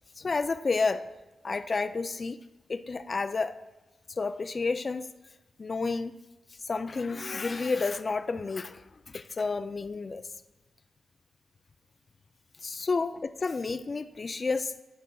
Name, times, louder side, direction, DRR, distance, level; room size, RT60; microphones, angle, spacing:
voice 1, 0.2-1.0 1.4-2.4 2.7-3.6 4.2-5.1 5.6-6.1 6.6-10.2 12.6-14.7, left 4 dB, 45° left, 9 dB, 0.3 m, -30 dB
13.5 x 5.4 x 2.3 m, 1.1 s
cardioid pair, 60°, 0 cm